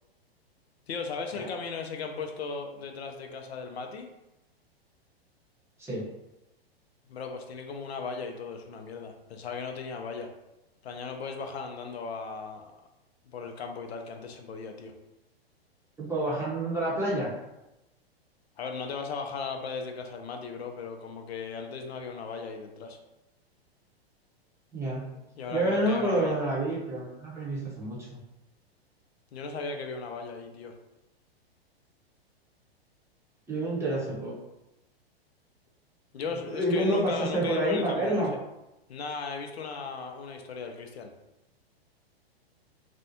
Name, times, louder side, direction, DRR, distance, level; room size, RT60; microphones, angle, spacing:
voice 1, 0.9-4.1 7.1-10.3 10.8-12.7 13.3-14.9 18.6-23.0 25.1-26.4 29.3-30.7 36.1-38.4 38.9-41.1, left 5 dB, 80° left, 5 dB, 0.5 m, -37 dB
voice 2, 16.0-17.3 24.7-25.1 25.5-28.2 33.5-34.3 36.5-38.3, right 1 dB, 10° right, -6 dB, 0.7 m, -28 dB
2.5 x 2.1 x 2.7 m, 0.93 s
hypercardioid pair, 110°, 31 cm